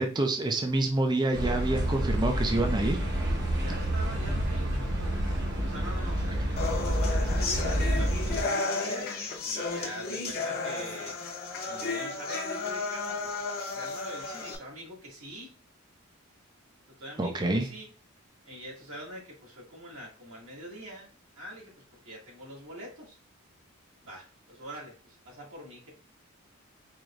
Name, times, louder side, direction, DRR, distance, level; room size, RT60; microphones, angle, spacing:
voice 1, 0.0-3.0 17.2-17.7, right 2 dB, 20° right, 5 dB, 0.4 m, -27 dB
sound 1, 1.3-8.4, right 1 dB, 55° right, 1.1 m, -28 dB
voice 2, 3.6-6.4 6.8-11.2 11.7-15.6 17.0-17.9 18.5-21.7 22.0-23.2 24.0-25.9, equal, 70° right, -4 dB, 2.0 m, -44 dB
sound 2, 6.6-14.6, left 3 dB, 45° left, 0.8 m, -33 dB
4.7 x 3.0 x 2.4 m, 0.39 s
head